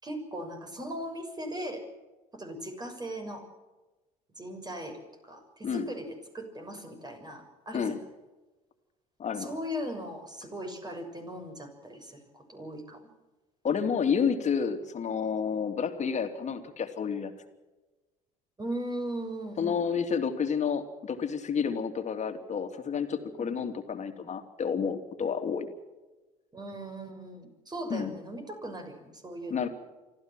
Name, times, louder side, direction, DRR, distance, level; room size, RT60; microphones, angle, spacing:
voice 1, 0.0-1.8 2.3-3.5 4.4-8.0 9.3-13.0 18.6-19.8 23.4-23.5 26.5-29.6, right 1 dB, 20° right, 5 dB, 6.6 m, -38 dB
voice 2, 9.2-9.5 13.6-17.3 19.6-25.7 27.9-28.1 29.5-29.7, left 6 dB, 40° left, 7 dB, 2.9 m, -30 dB
25.0 x 15.0 x 7.6 m, 1.1 s
hypercardioid pair, 65°, 18 cm